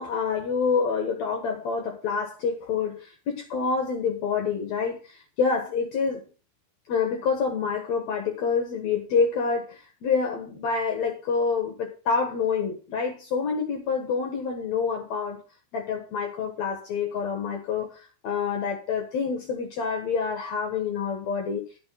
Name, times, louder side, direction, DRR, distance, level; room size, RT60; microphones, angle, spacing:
voice 1, 0.0-6.2 6.9-15.4 15.7-21.6, left 5 dB, 65° left, 2 dB, 2.6 m, -27 dB
12.0 x 6.1 x 5.6 m, 0.35 s
omnidirectional pair, 3.6 m